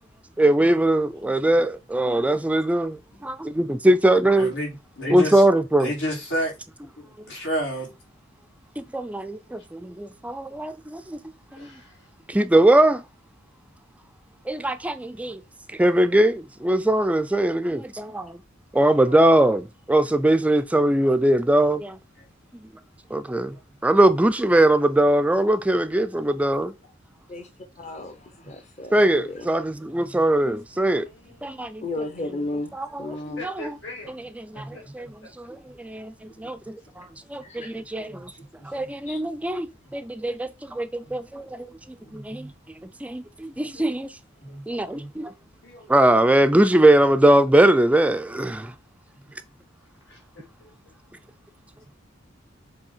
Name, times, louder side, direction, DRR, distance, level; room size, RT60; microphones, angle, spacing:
voice 1, 0.4-4.5 5.1-5.9 8.8-11.2 11.5-11.7 12.3-13.0 14.5-15.4 15.7-18.4 18.7-22.0 23.1-23.6 23.8-26.7 28.9-31.1 31.4-31.8 32.7-33.5 34.5-34.6 34.9-35.1 35.4-36.1 36.4-37.1 37.3-38.3 38.7-41.7 42.1-42.5 43.0-44.1 44.7-45.3 45.9-48.7, right 1 dB, 5° right, 0.3 m, -21 dB
voice 2, 1.1-1.5 3.1-3.3 4.3-5.4 5.8-6.5 7.0-7.9 14.8-14.9 23.5-23.6 28.0-28.5 29.9-30.2 34.5-34.9 36.4-36.5 37.4-38.3 38.6-38.9 41.0-41.1 42.0-42.5 43.7-43.9 44.4-45.1 45.6-45.9 48.3-48.4, equal, 90° left, 3.3 m, -33 dB
voice 3, 11.5-12.1 18.7-19.3 30.7-31.5 33.4-34.1 34.7-34.8 35.2-35.3 50.1-51.0, left 2 dB, 65° left, 4.5 m, -43 dB
voice 4, 27.8-28.2 28.5-29.5 31.8-32.7 33.0-33.4 37.4-37.7 39.1-39.2, left 2 dB, 35° left, 0.7 m, -33 dB
7.2 x 3.3 x 4.4 m
head